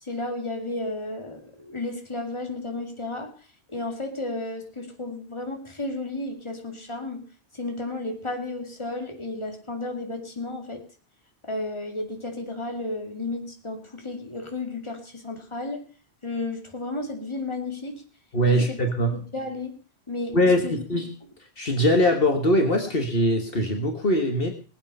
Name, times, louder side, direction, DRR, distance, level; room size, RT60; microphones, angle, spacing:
voice 1, 0.0-3.3 3.7-7.3 7.5-10.8 11.5-15.9 16.2-18.0 18.4-18.8 19.1-19.8 20.1-20.4 20.6-20.8, left 2 dB, 25° left, 3 dB, 2.5 m, -33 dB
voice 2, 18.3-19.2 20.3-21.1 21.6-24.5, equal, 60° left, 4 dB, 1.9 m, -22 dB
20.0 x 8.7 x 5.5 m, 0.38 s
omnidirectional pair, 1.1 m